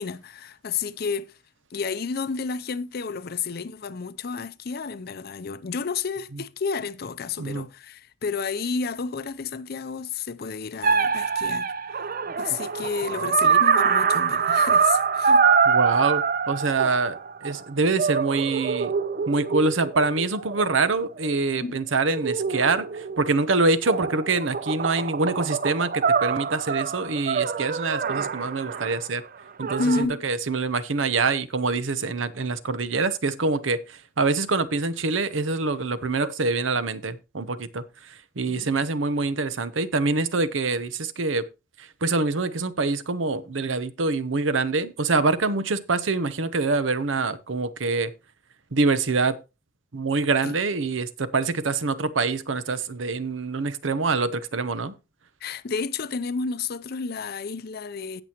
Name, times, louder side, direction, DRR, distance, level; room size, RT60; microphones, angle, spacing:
voice 1, 0.0-1.3 1.7-12.1 12.4-15.5 21.6-21.8 29.6-30.2 38.5-38.7 50.4-50.6 55.4-58.2, left 5 dB, 55° left, 0.5 m, -31 dB
sound 1, 10.8-17.6 18.0-21.3 22.1-23.4 23.8-29.0 29.6-30.0, right 6 dB, 50° right, 0.6 m, -24 dB
voice 2, 15.7-18.9 19.3-29.2 29.6-37.8 38.1-41.4 41.8-48.1 48.7-49.4 49.9-54.9, right 3 dB, 90° right, 0.8 m, -25 dB
17.0 x 6.1 x 3.0 m
head